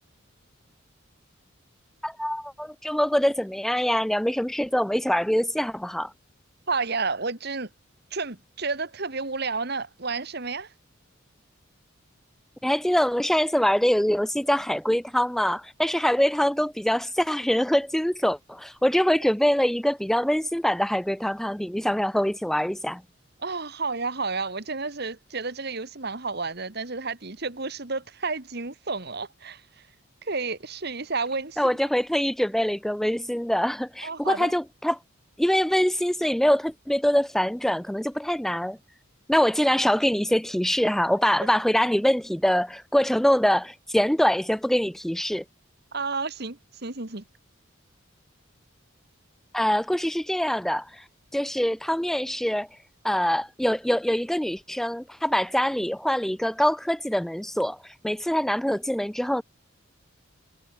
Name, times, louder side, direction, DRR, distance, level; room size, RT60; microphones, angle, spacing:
voice 1, 2.0-6.1 12.6-23.0 31.6-35.0 35.4-38.8 39.3-45.4 49.5-51.0 51.3-52.7 53.0-59.4, equal, ahead, 0.3 m, -24 dB
voice 2, 6.7-7.7 8.1-10.7 23.4-29.6 30.2-31.8 34.0-34.5 45.9-47.2, right 4 dB, 50° right, 2.0 m, -31 dB
head